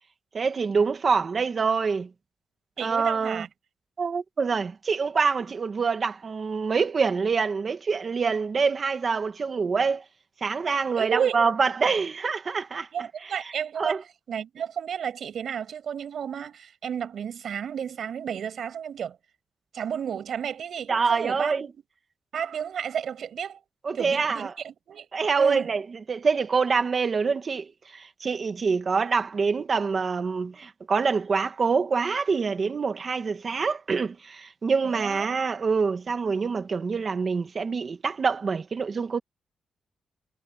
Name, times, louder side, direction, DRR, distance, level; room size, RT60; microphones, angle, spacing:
voice 1, 0.3-2.1 2.8-3.4 4.0-10.0 10.4-12.9 13.8-14.0 20.9-21.7 23.8-24.5 25.1-25.8 26.1-39.2, right 5 dB, 35° right, 1.9 m, -25 dB
voice 2, 2.8-3.5 10.7-11.4 12.9-19.2 19.7-21.5 22.3-23.6 23.9-25.1 25.4-25.7 34.8-35.3, right 8 dB, 55° right, 6.5 m, -32 dB
wide cardioid pair, 160°, 0 cm